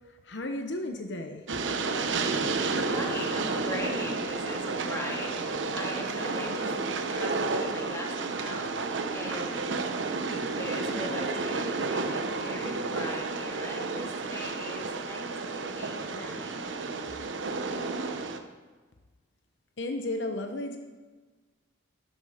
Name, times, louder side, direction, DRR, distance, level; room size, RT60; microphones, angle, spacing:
voice 1, 0.2-1.4 19.8-20.8, left 1 dB, 65° left, 5 dB, 0.9 m, -33 dB
Train, 1.5-18.4, right 3 dB, 75° right, 1.0 m, -31 dB
voice 2, 2.8-6.7 7.1-9.5 10.2-16.8, left 1 dB, 15° left, -1 dB, 2.1 m, -40 dB
12.0 x 12.0 x 5.0 m, 1.3 s
head